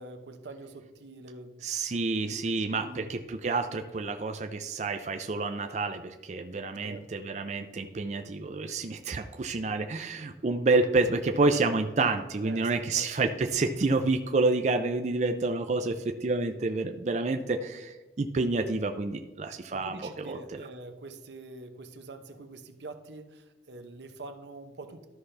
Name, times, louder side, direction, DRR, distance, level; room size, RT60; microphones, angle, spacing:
voice 1, 0.0-1.7 2.2-3.1 6.8-7.1 12.4-13.1 19.7-25.1, right 2 dB, 80° right, 7 dB, 0.8 m, -45 dB
voice 2, 1.6-20.4, right 3 dB, 40° right, 6 dB, 0.4 m, -29 dB
13.0 x 5.7 x 3.3 m, 1.2 s
head